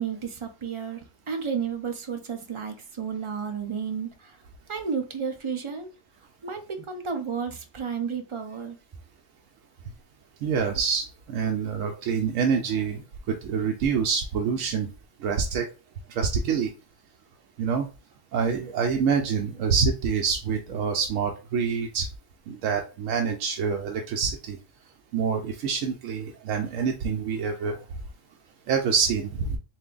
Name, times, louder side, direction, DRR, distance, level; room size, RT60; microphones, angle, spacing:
voice 1, 0.0-4.4 4.7-5.9 6.4-8.8, right 6 dB, 50° right, 5 dB, 0.3 m, -32 dB
voice 2, 10.4-14.9 15.2-15.7 16.1-16.7 17.6-17.9 18.3-22.1 22.5-24.6 25.1-27.8 28.7-29.6, right 6 dB, 85° right, 3 dB, 1.0 m, -26 dB
3.3 x 2.6 x 3.7 m, 0.31 s
omnidirectional pair, 1.3 m